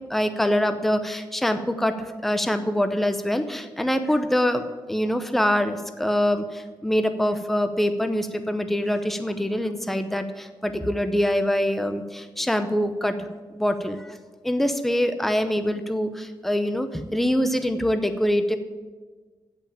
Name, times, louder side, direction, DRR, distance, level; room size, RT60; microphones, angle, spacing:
voice 1, 0.1-13.3 13.5-14.2 14.4-18.6, equal, 5° left, 8 dB, 0.7 m, -24 dB
16.0 x 5.9 x 8.7 m, 1.4 s
wide cardioid pair, 175°, 9 cm